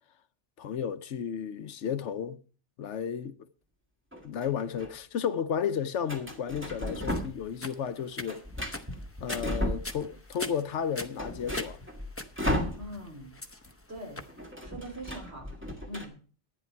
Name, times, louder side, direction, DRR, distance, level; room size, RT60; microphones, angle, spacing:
voice 1, 0.6-2.4 2.8-3.3 4.2-8.4 9.2-11.8, left 7 dB, 85° left, 1.1 m, -33 dB
sound 1, 4.1-4.9 6.1-7.5 7.8-10.3 10.7-10.8 11.0-13.3 13.5-13.7 14.0-16.0, left 1 dB, 10° right, 1.7 m, -35 dB
sound 2, 7.1-14.4, left 2 dB, 15° left, 0.8 m, -42 dB
voice 2, 12.7-13.4 13.9-14.2 14.6-15.5 15.9-16.2, right 1 dB, 65° right, 3.9 m, -42 dB
11.0 x 9.7 x 4.5 m
omnidirectional pair, 1.2 m